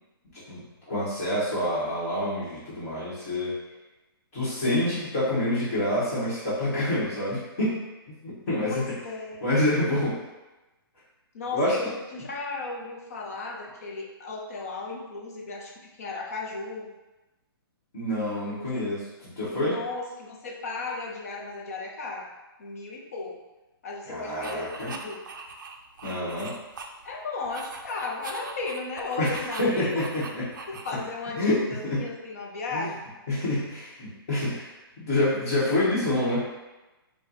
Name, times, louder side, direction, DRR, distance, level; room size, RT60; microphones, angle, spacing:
voice 1, 0.5-3.6 4.3-7.8 8.2-8.8 9.4-10.2 11.5-11.8 17.9-19.8 24.0-24.9 26.0-26.5 29.2-29.3 29.6-30.5 31.4-32.0 32.7-32.9 33.3-36.4, left 1 dB, 20° left, -13 dB, 1.3 m, -27 dB
voice 2, 8.6-9.4 11.3-16.9 18.7-18.9 19.6-22.3 22.6-23.4 23.8-25.2 27.0-30.1 30.7-33.0, left 3 dB, 35° left, -1 dB, 0.6 m, -35 dB
sound 1, 24.4-27.1 27.4-31.2, right 4 dB, 55° right, 0.5 m, -41 dB
4.4 x 2.3 x 4.0 m, 1.1 s
hypercardioid pair, 175°, 13 cm